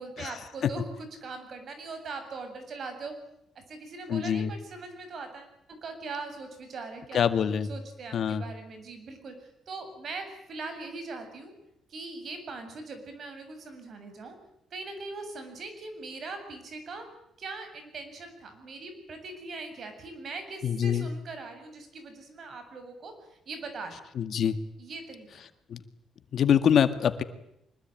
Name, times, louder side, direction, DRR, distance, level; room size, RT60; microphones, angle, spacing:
voice 1, 0.0-3.1 3.7-5.5 5.8-7.3 7.7-11.5 11.9-14.4 14.7-17.1 17.4-23.1 23.5-24.0 24.8-25.5, right 3 dB, 55° right, 8 dB, 7.4 m, -41 dB
voice 2, 4.1-4.5 7.1-7.7 8.1-8.4 20.6-21.1 24.2-24.6 25.7-25.8 26.3-27.2, left 8 dB, 60° left, 11 dB, 2.0 m, -24 dB
24.5 x 21.0 x 9.2 m, 0.81 s
cardioid pair, 90°, 0 cm